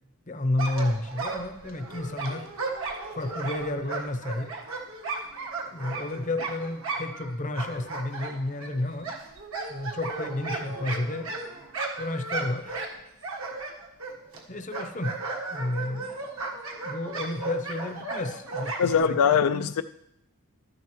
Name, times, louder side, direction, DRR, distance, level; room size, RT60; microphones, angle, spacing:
voice 1, 0.3-2.5 3.1-4.5 5.7-9.1 9.7-11.3 12.0-12.8 14.5-15.1 15.5-16.1 16.8-19.7, left 2 dB, 35° left, 8 dB, 0.7 m, -31 dB
sound 1, 0.6-7.3 7.5-14.4 14.7-19.0, right 3 dB, 65° right, 1.4 m, -35 dB
voice 2, 18.8-19.8, left 7 dB, 75° left, 10 dB, 0.4 m, -22 dB
12.5 x 10.5 x 3.1 m, 0.80 s
head